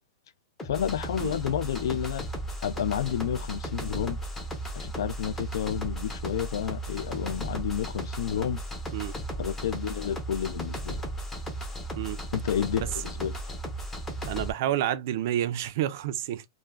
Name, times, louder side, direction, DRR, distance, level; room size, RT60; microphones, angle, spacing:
voice 1, 0.6-2.2 2.6-4.2 4.8-8.6 9.4-11.0 12.3-13.4, left 9 dB, 75° left, 0.3 m, -30 dB
sound 1, 0.6-14.5, right 1 dB, 10° left, 0.5 m, -35 dB
voice 2, 14.2-16.4, right 12 dB, 45° right, 0.3 m, -29 dB
2.3 x 2.1 x 3.2 m
supercardioid pair, 175°, 2 cm